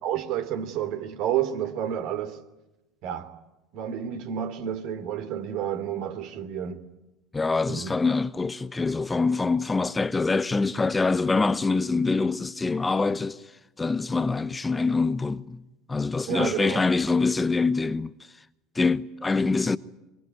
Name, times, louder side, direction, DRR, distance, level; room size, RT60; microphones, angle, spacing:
voice 1, 0.0-2.4 3.0-3.3 3.7-6.8 7.7-7.9 16.3-16.9, right 9 dB, 55° right, 3.1 m, -30 dB
voice 2, 7.3-13.4 13.8-15.6 15.9-18.1 18.7-19.8, left 3 dB, 15° left, 0.9 m, -25 dB
24.5 x 24.0 x 9.6 m
figure-of-eight pair, 70°, 0 cm